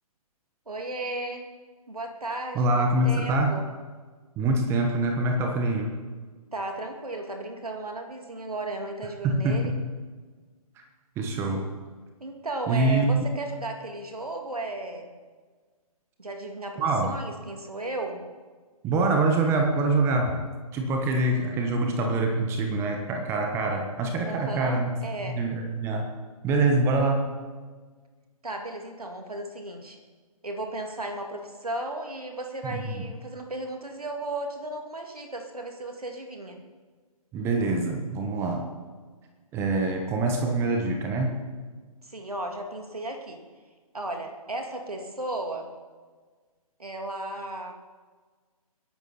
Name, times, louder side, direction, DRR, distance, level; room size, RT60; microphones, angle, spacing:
voice 1, 0.7-1.4 1.9-3.6 6.3-9.7 12.2-15.1 16.2-18.2 24.2-25.4 28.4-30.0 30.4-36.6 42.0-43.4 43.9-45.7 46.8-47.7, right 2 dB, 75° right, 3 dB, 2.5 m, -35 dB
voice 2, 2.5-3.6 4.4-5.9 9.2-9.8 11.2-11.7 12.7-13.3 16.8-17.1 18.8-20.4 20.7-24.9 25.3-26.1 26.4-27.3 32.6-33.0 37.3-38.7 39.5-41.4, right 2 dB, 15° right, 3 dB, 1.2 m, -25 dB
22.5 x 12.0 x 4.2 m, 1.4 s
figure-of-eight pair, 135°, 19 cm